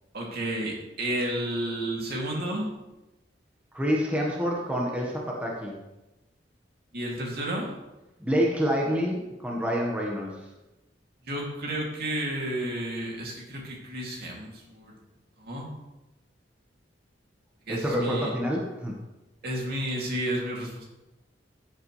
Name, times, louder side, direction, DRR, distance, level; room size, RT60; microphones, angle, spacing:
voice 1, 0.1-2.7 6.9-7.7 11.3-14.9 15.4-15.7 17.7-18.3 19.4-20.8, right 1 dB, 60° right, -2 dB, 2.9 m, -31 dB
voice 2, 3.7-5.8 8.2-10.4 17.7-18.9, equal, 10° right, -3 dB, 1.5 m, -27 dB
15.0 x 8.1 x 3.4 m, 1.0 s
head